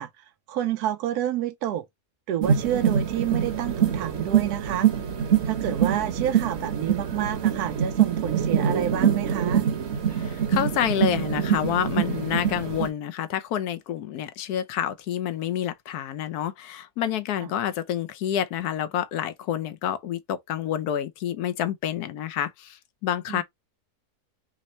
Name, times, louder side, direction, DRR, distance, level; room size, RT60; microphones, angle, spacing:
voice 1, 0.0-1.8 2.3-4.9 5.5-9.6 17.4-17.5 23.3-23.4, right 11 dB, 85° right, 1.1 m, -29 dB
sound 1, 2.4-12.9, right 8 dB, 50° right, 1.0 m, -24 dB
voice 2, 10.1-23.4, left 10 dB, 85° left, 1.2 m, -28 dB
3.5 x 3.0 x 4.2 m
omnidirectional pair, 1.6 m